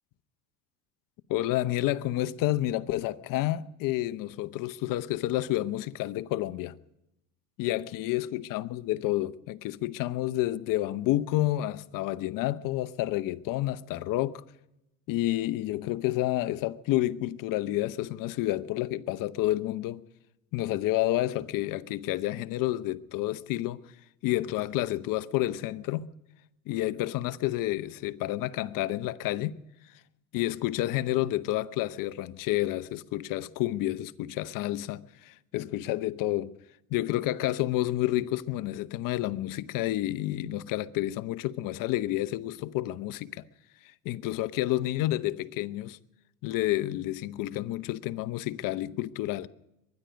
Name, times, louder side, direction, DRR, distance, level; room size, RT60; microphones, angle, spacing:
voice 1, 1.3-6.7 7.6-14.4 15.1-20.0 20.5-23.8 24.2-26.1 26.7-29.6 30.3-36.6 36.9-43.4 44.0-46.0 46.4-49.5, left 15 dB, 50° left, 0.8 m, -29 dB
23.0 x 10.5 x 5.2 m
hypercardioid pair, 90°, 41 cm